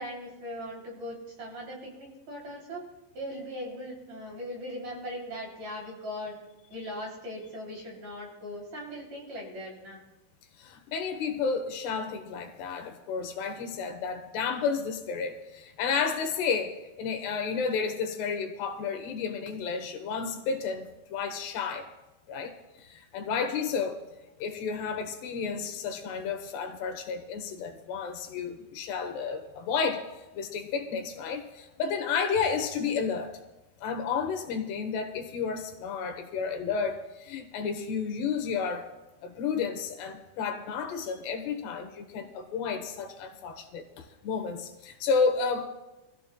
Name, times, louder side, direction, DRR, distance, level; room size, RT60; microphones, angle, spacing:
voice 1, 0.0-2.8 3.1-6.4 6.7-10.0 23.3-23.5, equal, 45° right, -2 dB, 4.1 m, -39 dB
voice 2, 10.6-21.9 22.3-24.0 24.4-30.0 30.3-33.3 33.8-38.9 39.2-45.7, left 5 dB, 85° left, 5 dB, 3.3 m, -31 dB
24.0 x 15.0 x 2.3 m, 1.0 s
omnidirectional pair, 4.7 m